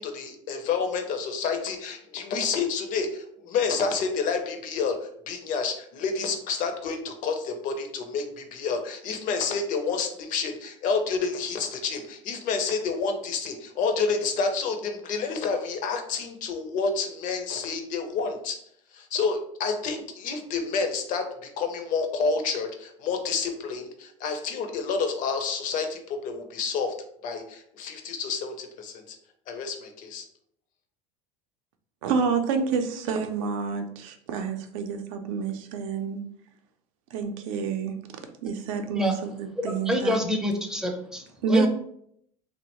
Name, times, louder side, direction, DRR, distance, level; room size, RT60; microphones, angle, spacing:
voice 1, 0.0-18.6 18.9-26.9 27.2-29.2 29.5-30.3, left 5 dB, 50° left, 5 dB, 0.5 m, -29 dB
voice 2, 32.0-36.2 37.1-38.0 38.4-40.2 41.4-41.7, right 5 dB, 80° right, 6 dB, 0.5 m, -28 dB
voice 3, 39.9-41.7, left 1 dB, 5° right, 2 dB, 0.5 m, -27 dB
2.7 x 2.1 x 2.9 m, 0.69 s
supercardioid pair, 105°, 17 cm